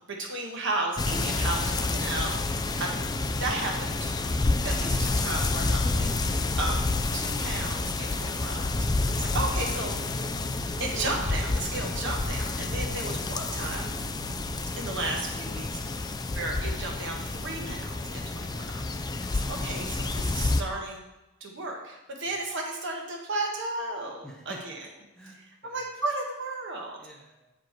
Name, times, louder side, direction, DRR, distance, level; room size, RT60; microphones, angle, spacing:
voice 1, 0.0-2.3 2.8-2.9 3.4-4.4 4.6-6.2 6.6-6.9 7.1-8.9 9.1-9.9 10.8-13.9 14.8-16.1 16.3-18.8 19.1-21.0 21.4-24.7 25.6-26.9, right 2 dB, 65° right, 0 dB, 1.3 m, -34 dB
sound 1, 1.0-20.6, left 3 dB, 20° left, 0.4 m, -29 dB
sound 2, 2.3-14.6, right 4 dB, 80° right, 0.5 m, -45 dB
voice 2, 24.2-24.7 25.1-25.9 27.0-27.5, right 1 dB, 5° left, -2 dB, 1.0 m, -50 dB
7.5 x 5.0 x 4.5 m, 0.97 s
head